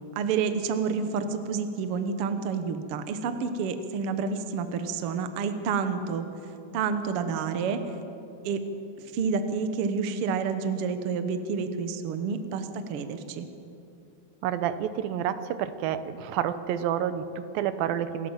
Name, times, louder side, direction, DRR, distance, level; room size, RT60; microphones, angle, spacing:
voice 1, 0.1-6.2 6.7-7.8 8.4-8.6 9.0-13.5, right 5 dB, 65° right, 8 dB, 1.5 m, -29 dB
voice 2, 14.4-18.3, right 10 dB, 90° right, 12 dB, 2.7 m, -29 dB
27.0 x 13.0 x 7.3 m, 2.7 s
omnidirectional pair, 4.0 m